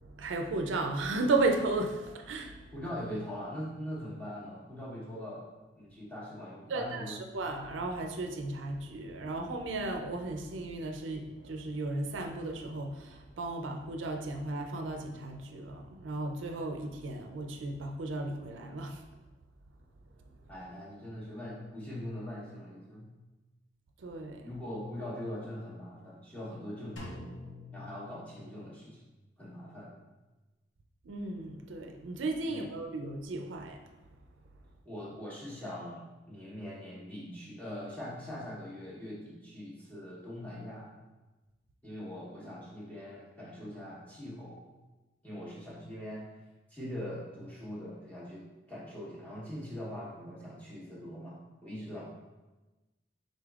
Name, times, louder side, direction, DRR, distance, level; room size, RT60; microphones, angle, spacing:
voice 1, 0.0-2.6 6.7-19.0 24.0-24.5 31.0-33.8, right 2 dB, 90° right, 4 dB, 0.5 m, -34 dB
voice 2, 2.7-5.5 5.7-7.2 20.5-23.1 24.4-27.2 27.7-29.0 29.4-30.0 32.5-32.7 34.8-40.9 41.8-44.6 45.2-46.2 46.7-48.4 48.7-52.0, equal, 10° left, -7 dB, 1.0 m, -42 dB
Drum, 27.0-28.9, left 1 dB, 80° left, 1.0 m, -46 dB
5.0 x 3.9 x 2.4 m, 1.1 s
head